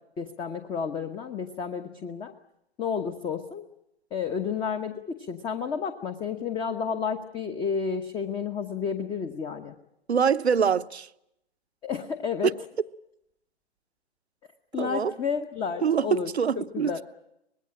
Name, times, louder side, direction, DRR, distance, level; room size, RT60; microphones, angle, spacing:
voice 1, 0.2-2.3 2.8-3.6 4.1-9.7 11.8-12.5 14.7-17.0, left 6 dB, 15° left, 1.0 m, -31 dB
voice 2, 10.1-11.1 14.8-15.1 15.8-17.0, right 7 dB, 75° right, 1.0 m, -24 dB
24.5 x 20.5 x 8.8 m
figure-of-eight pair, 125°, 32 cm